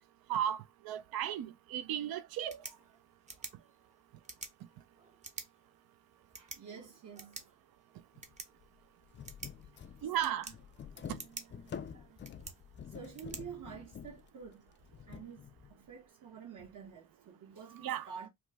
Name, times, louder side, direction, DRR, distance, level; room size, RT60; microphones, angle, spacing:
voice 1, 0.3-2.6 10.0-10.5 11.1-11.2 17.8-18.1, right 10 dB, 75° right, 0.5 m, -35 dB
sound 1, 2.3-14.3, right 3 dB, 20° right, 0.6 m, -51 dB
voice 2, 3.4-3.7 6.4-7.5 9.2-9.3 9.7-10.4 11.6-12.2 12.9-14.6 15.1-18.3, right 7 dB, 60° right, 1.0 m, -50 dB
sound 2, 8.1-8.3 8.6-8.7 9.1-15.8, left 7 dB, 35° left, 0.4 m, -48 dB
3.0 x 2.1 x 3.3 m
cardioid pair, 110°, 36 cm